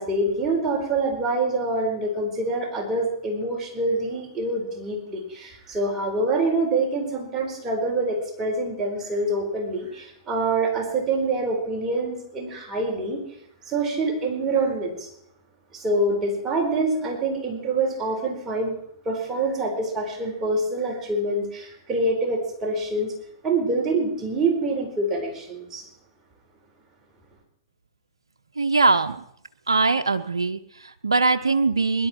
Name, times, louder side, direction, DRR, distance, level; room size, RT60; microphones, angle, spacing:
voice 1, 0.0-13.2 13.7-15.1 15.7-18.8 19.0-23.1 23.4-25.9, right 2 dB, 20° right, -1 dB, 4.6 m, -25 dB
voice 2, 28.6-29.2 29.7-32.1, right 3 dB, 90° right, 8 dB, 0.7 m, -21 dB
21.5 x 12.0 x 4.5 m, 0.71 s
hypercardioid pair, 115°, 3 cm